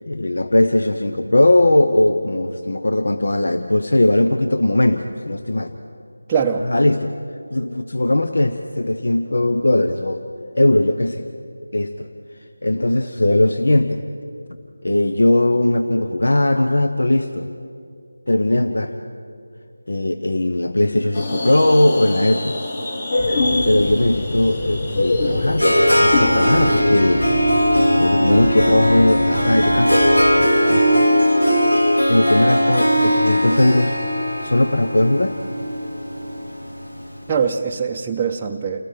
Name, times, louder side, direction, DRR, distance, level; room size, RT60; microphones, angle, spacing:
voice 1, 0.0-5.7 6.6-7.2 7.5-10.2 10.5-11.3 11.7-12.1 12.6-14.1 14.8-17.5 18.3-18.9 19.9-22.6 23.6-25.7 26.0-27.3 27.9-30.0 30.7-31.1 32.1-34.0 34.4-35.4, left 1 dB, 70° left, 7 dB, 1.0 m, -19 dB
voice 2, 6.3-6.7 37.3-38.9, right 6 dB, 15° right, -1 dB, 0.6 m, -22 dB
sound 1, 21.1-26.8, left 2 dB, 45° left, 4.0 m, -24 dB
sound 2, 23.2-30.5, left 2 dB, 20° left, 1.2 m, -29 dB
Harp, 24.9-37.1, equal, 90° left, 3.4 m, -18 dB
29.5 x 20.0 x 5.0 m, 2.5 s
figure-of-eight pair, 165°, 0 cm